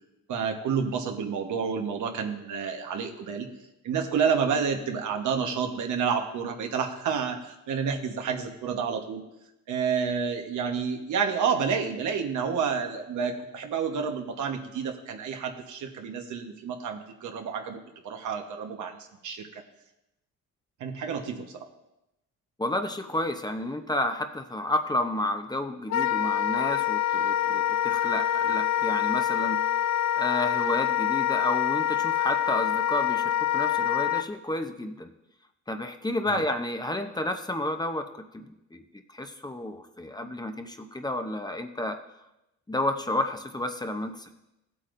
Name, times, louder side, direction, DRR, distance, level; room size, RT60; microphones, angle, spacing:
voice 1, 0.3-3.5 3.8-9.2 9.7-17.8 18.0-19.6 20.8-21.7 36.3-36.4, right 6 dB, 75° right, 4 dB, 1.3 m, -29 dB
voice 2, 22.6-29.6 30.1-35.1 35.7-38.8 39.1-42.0 42.7-44.3, left 1 dB, 15° left, 6 dB, 0.8 m, -31 dB
Wind instrument woodwind instrument, 25.9-34.3, left 10 dB, 65° left, 0.4 m, -26 dB
15.5 x 8.4 x 2.6 m, 0.90 s
cardioid pair, 90°, 30 cm